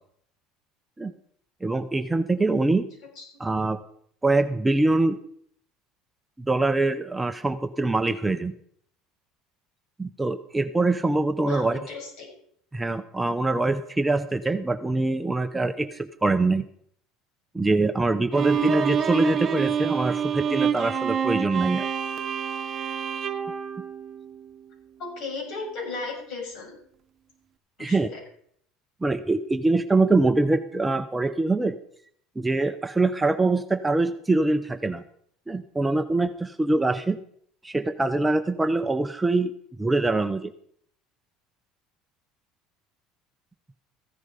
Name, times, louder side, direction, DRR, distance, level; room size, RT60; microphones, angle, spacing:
voice 1, 1.6-2.9 3.4-3.8 4.2-5.2 6.4-8.5 10.0-11.8 12.7-16.6 17.5-21.9 27.8-28.1 29.0-31.8 32.4-35.0 35.5-37.2 37.6-39.5 39.8-40.5, right 2 dB, 10° right, 9 dB, 0.7 m, -24 dB
voice 2, 11.4-12.3 25.0-26.8 27.8-28.2, left 4 dB, 60° left, -1 dB, 7.2 m, -35 dB
Bowed string instrument, 18.3-24.6, right 8 dB, 35° right, 1.1 m, -27 dB
14.5 x 10.5 x 5.1 m, 0.64 s
cardioid pair, 130°, 0 cm